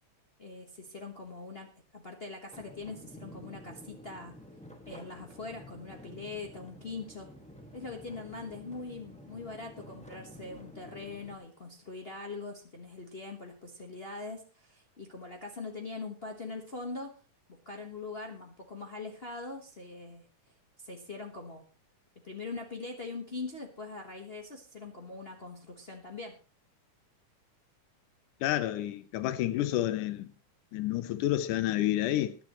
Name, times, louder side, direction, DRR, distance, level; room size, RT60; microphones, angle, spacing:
voice 1, 0.4-4.4 4.9-7.3 7.7-17.1 17.5-20.3 20.8-21.6 22.2-26.4, left 3 dB, 75° left, 0.5 m, -42 dB
sound 1, 2.5-11.4, equal, 5° left, 0.8 m, -50 dB
voice 2, 28.4-30.3 30.7-32.4, left 13 dB, 90° left, 2.2 m, -29 dB
20.5 x 10.5 x 3.1 m
omnidirectional pair, 3.5 m